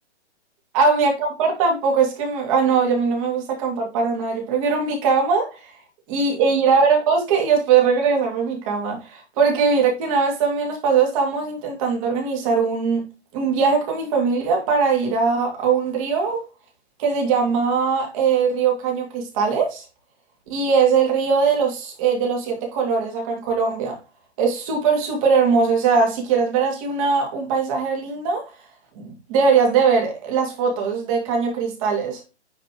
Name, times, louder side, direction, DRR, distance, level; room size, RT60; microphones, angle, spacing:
voice 1, 0.7-5.6 6.1-13.0 13.3-16.4 17.0-19.8 20.5-24.0 24.4-28.4 29.0-32.2, right 5 dB, 30° right, 2.3 m, -20 dB
9.5 x 4.3 x 3.0 m
hypercardioid pair, 160°, 34 cm